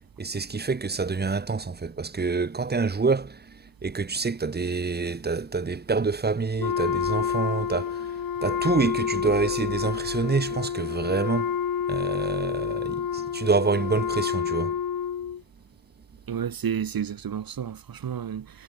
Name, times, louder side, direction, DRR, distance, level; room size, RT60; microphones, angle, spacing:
voice 1, 0.2-11.6 11.9-14.8, right 4 dB, 30° right, 1.7 m, -27 dB
Wind instrument woodwind instrument, 6.6-15.4, left 8 dB, 70° left, 2.8 m, -29 dB
voice 2, 16.3-18.6, right 8 dB, 80° right, 4.9 m, -31 dB
wide cardioid pair, 175°, 34 cm